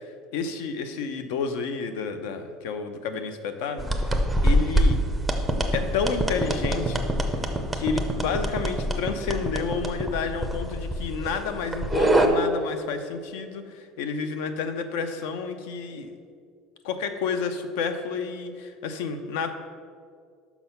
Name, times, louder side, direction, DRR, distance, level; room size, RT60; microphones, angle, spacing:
voice 1, 0.3-3.9 4.4-5.0 5.7-7.0 7.3-7.4 7.7-16.1 16.8-19.5, left 5 dB, 75° left, 9 dB, 0.7 m, -30 dB
sound 1, 3.8-12.3, right 1 dB, 5° right, 0.5 m, -25 dB
6.1 x 5.8 x 5.6 m, 2.1 s
cardioid pair, 175°, 0 cm